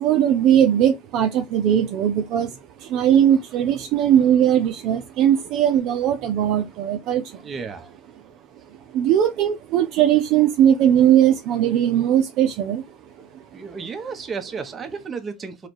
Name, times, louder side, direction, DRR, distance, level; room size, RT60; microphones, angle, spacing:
voice 1, 0.0-7.4 8.9-12.8 13.2-13.3 13.6-13.7, right 10 dB, 55° right, 0.7 m, -19 dB
voice 2, 7.3-7.9 13.5-15.7, right 5 dB, 25° right, 1.1 m, -33 dB
4.9 x 2.4 x 4.5 m
supercardioid pair, 140°, 0 cm